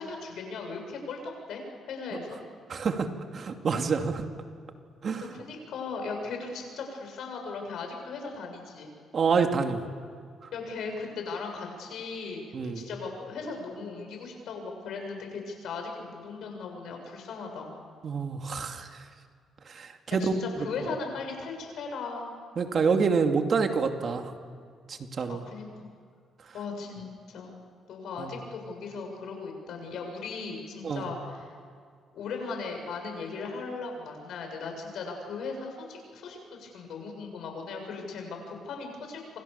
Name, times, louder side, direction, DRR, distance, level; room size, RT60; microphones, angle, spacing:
voice 1, 0.0-1.6 1.9-2.4 5.3-8.9 10.5-17.8 20.2-22.3 25.3-25.8 26.5-27.5 27.9-31.5 32.1-39.2, left 4 dB, 75° left, 3 dB, 7.4 m, -38 dB
voice 2, 2.7-3.1 3.3-4.2 5.0-5.3 9.1-9.8 12.5-12.8 18.0-18.9 19.7-20.3 22.6-24.3 24.9-25.4 28.2-28.3 30.8-31.1, right 5 dB, 50° right, 5 dB, 2.4 m, -27 dB
28.0 x 26.5 x 7.0 m, 2.2 s
cardioid pair, 90°, 0 cm